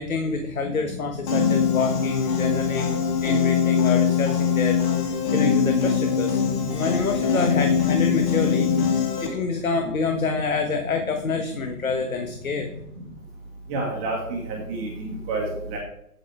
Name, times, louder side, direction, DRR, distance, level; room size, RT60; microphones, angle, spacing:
voice 1, 0.0-8.7 9.2-12.7, left 4 dB, 60° left, 5 dB, 1.4 m, -27 dB
Piano, 1.3-9.3, left 6 dB, 30° left, 1.7 m, -22 dB
voice 2, 13.7-15.4 15.7-15.8, right 3 dB, 20° right, -2 dB, 1.4 m, -29 dB
8.7 x 8.1 x 4.6 m, 0.74 s
figure-of-eight pair, 135°, 48 cm